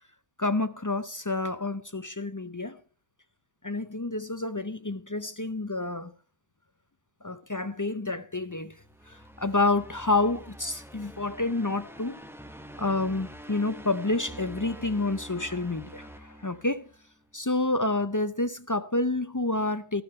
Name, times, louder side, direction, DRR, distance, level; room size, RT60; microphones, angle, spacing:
voice 1, 0.4-2.8 3.6-6.1 7.2-8.8 9.1-12.2 12.8-16.9 17.3-20.0, left 2 dB, 25° left, 0.4 m, -29 dB
sound 1, 8.8-17.1, right 1 dB, ahead, 0.9 m, -46 dB
13.0 x 13.0 x 4.3 m
omnidirectional pair, 1.1 m